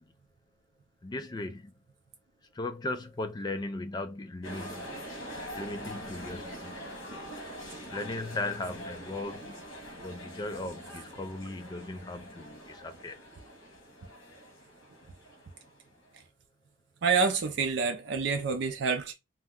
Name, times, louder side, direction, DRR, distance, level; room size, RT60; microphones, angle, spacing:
voice 1, 1.0-1.7 2.5-4.9 5.5-6.8 7.9-9.6 10.0-13.2, left 2 dB, 20° left, 0.3 m, -37 dB
sound 1, 4.4-16.2, equal, 70° left, 1.2 m, -44 dB
voice 2, 17.0-19.1, right 5 dB, 60° right, 0.4 m, -27 dB
2.7 x 2.1 x 3.5 m
head